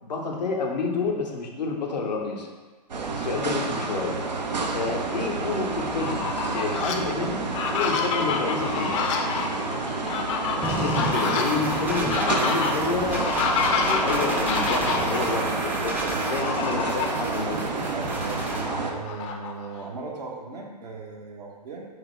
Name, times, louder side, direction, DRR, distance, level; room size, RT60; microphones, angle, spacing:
voice 1, 0.0-2.5 3.1-4.2 4.7-7.4 7.7-8.9 10.7-13.3 13.5-16.0 16.3-17.8, left 4 dB, 80° left, 1 dB, 0.7 m, -29 dB
sound 1, 2.9-18.9, right 3 dB, 90° right, 0.5 m, -29 dB
Fowl, 5.9-6.9 7.4-15.2 16.2-17.2 17.7-17.8 18.1-19.9, left 5 dB, 45° left, 0.5 m, -28 dB
sound 2, 10.6-18.6, right 1 dB, 10° right, 0.4 m, -32 dB
voice 2, 14.4-15.4 16.0-16.3 17.9-18.5 18.8-21.9, right 4 dB, 70° right, 0 dB, 0.9 m, -38 dB
4.9 x 2.0 x 4.3 m, 1.4 s
hypercardioid pair, 110°, 21 cm